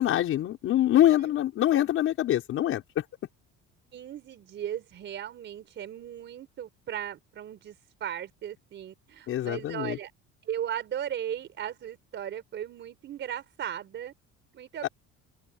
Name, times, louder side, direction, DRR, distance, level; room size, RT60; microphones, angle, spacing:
voice 1, 0.0-3.0 9.3-10.0 14.8-14.9, left 12 dB, 45° left, 5.8 m, -24 dB
voice 2, 3.9-7.7 8.0-10.1 10.5-14.1 14.5-14.9, right 10 dB, 40° right, 4.6 m, -37 dB
cardioid pair, 170°, 30 cm